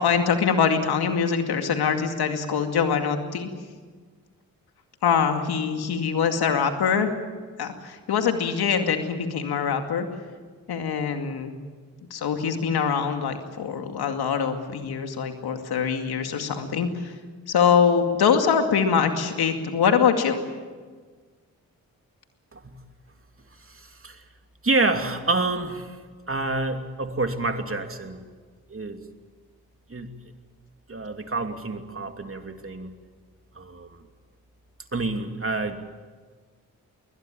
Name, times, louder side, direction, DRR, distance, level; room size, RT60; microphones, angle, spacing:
voice 1, 0.0-3.5 5.0-7.1 7.6-10.1 10.7-11.5 12.1-17.1 17.5-20.4, left 6 dB, 80° left, 6 dB, 2.4 m, -23 dB
voice 2, 23.6-24.2 24.6-26.0 26.3-28.2 28.7-29.0 29.9-30.1 30.9-32.9 33.5-34.0 34.9-35.8, right 3 dB, 35° right, 6 dB, 2.9 m, -28 dB
21.0 x 20.5 x 9.1 m, 1.5 s
supercardioid pair, 45°, 37 cm